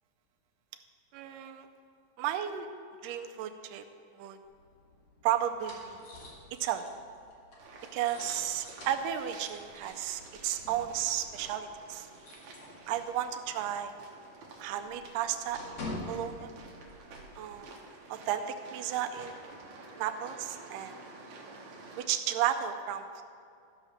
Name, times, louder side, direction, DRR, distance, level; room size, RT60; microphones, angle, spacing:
voice 1, 1.1-1.7 2.2-2.7 3.0-3.8 4.1-4.4 5.2-6.0 6.6-6.9 7.9-12.1 12.9-14.0 14.6-16.5 17.4-17.7 18.1-19.5 20.0-21.0 22.0-23.2, right 10 dB, 80° right, 6 dB, 2.2 m, -33 dB
sound 1, 4.4-13.3 13.6-13.7 14.1-17.5, left 2 dB, 55° left, 3.0 m, -47 dB
sound 2, 7.6-22.0, right 3 dB, 65° right, 2.3 m, -51 dB
13.5 x 5.0 x 6.5 m, 2.4 s
omnidirectional pair, 3.9 m